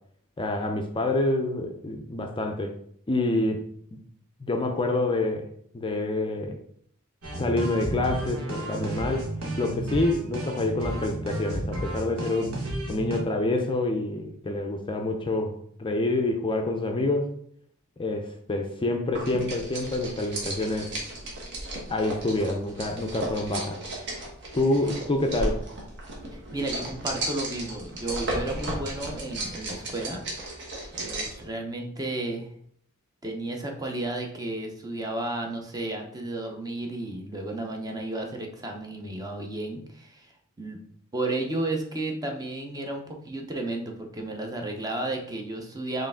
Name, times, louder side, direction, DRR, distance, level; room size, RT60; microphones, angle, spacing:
voice 1, 0.4-2.7 3.1-3.6 3.9-4.0 4.4-5.5 5.7-6.6 7.4-9.3 9.6-12.6 12.9-17.3 18.0-20.9 21.9-23.8 24.5-25.6, left 2 dB, 25° left, 3 dB, 0.4 m, -27 dB
sound 1, 7.2-13.2, right 1 dB, 80° right, 1.3 m, -32 dB
sound 2, 19.1-31.4, right 1 dB, 55° right, 1.2 m, -35 dB
voice 2, 26.3-30.2 31.0-32.5 33.2-40.3 40.6-40.8 41.1-46.1, right 2 dB, 15° right, 2 dB, 0.6 m, -33 dB
4.6 x 3.2 x 3.6 m, 0.64 s
head